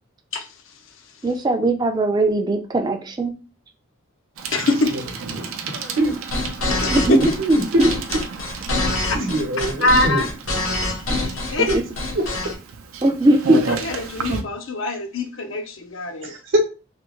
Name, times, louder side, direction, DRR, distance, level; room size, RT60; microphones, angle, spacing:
voice 1, 1.2-3.3 6.7-7.9 11.6-11.7 13.0-13.6, right 1 dB, 20° right, 0.4 m, -19 dB
Bicycle, 4.4-14.4, right 4 dB, 80° right, 0.5 m, -32 dB
voice 2, 4.5-5.0 6.7-6.9 9.1-9.2 9.8-10.3 11.5-11.7 13.8-16.3, left 2 dB, 65° left, 0.5 m, -23 dB
voice 3, 5.3-6.2 7.0-7.9 8.5-8.6 8.9-10.2 11.1-11.2 11.4-11.8 12.1-12.5 16.2-16.6, right 1 dB, 65° right, 0.9 m, -25 dB
sound 1, 6.0-12.5, left 2 dB, 85° left, 1.0 m, -25 dB
3.3 x 2.3 x 3.0 m
head